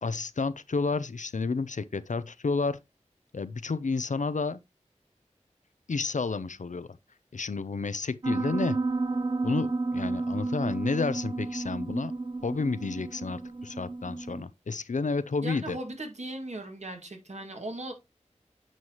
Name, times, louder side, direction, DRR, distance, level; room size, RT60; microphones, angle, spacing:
voice 1, 0.0-2.8 3.3-4.6 5.9-6.9 7.3-8.8 9.4-12.1 12.4-15.8, left 4 dB, 85° left, 0.6 m, -31 dB
Piano, 8.2-14.4, right 3 dB, 40° right, 0.7 m, -31 dB
voice 2, 15.4-17.9, right 1 dB, 65° right, 2.1 m, -38 dB
9.2 x 5.6 x 3.0 m
wide cardioid pair, 55°, 12 cm